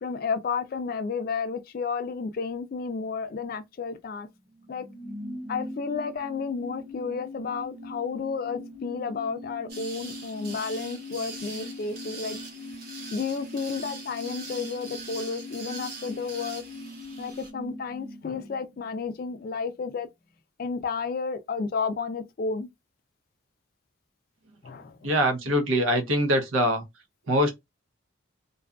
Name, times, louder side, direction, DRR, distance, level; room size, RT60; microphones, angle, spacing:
voice 1, 0.0-4.3 4.7-4.8 5.5-12.4 13.1-16.6 17.2-20.1 20.6-22.7 24.6-25.2, left 5 dB, 45° left, 0.3 m, -32 dB
sound 1, 4.3-19.6 19.9-20.0, left 1 dB, 5° right, 0.5 m, -42 dB
sound 2, 9.7-17.5, right 3 dB, 50° right, 0.8 m, -42 dB
voice 2, 25.0-26.8 27.3-27.5, equal, 90° right, 0.7 m, -23 dB
2.6 x 2.4 x 2.2 m
head